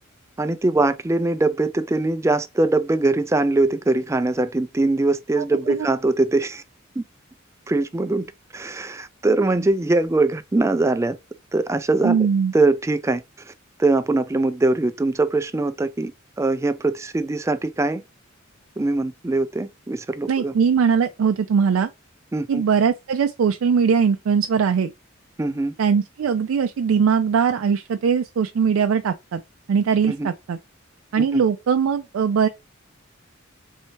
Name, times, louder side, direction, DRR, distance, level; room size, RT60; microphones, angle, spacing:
voice 1, 0.4-6.6 7.0-7.1 7.7-8.2 8.5-11.2 11.5-12.3 12.5-13.5 13.8-16.1 16.4-18.0 18.8-20.5 22.3-22.6 25.4-25.7 30.0-30.3 31.2-31.4, right 2 dB, 15° right, 0.3 m, -22 dB
voice 2, 5.4-5.9 12.0-12.5 20.3-21.9 22.5-24.9 25.8-29.4 29.7-30.6 31.1-32.5, right 6 dB, 85° right, 0.4 m, -20 dB
4.4 x 2.7 x 2.9 m
head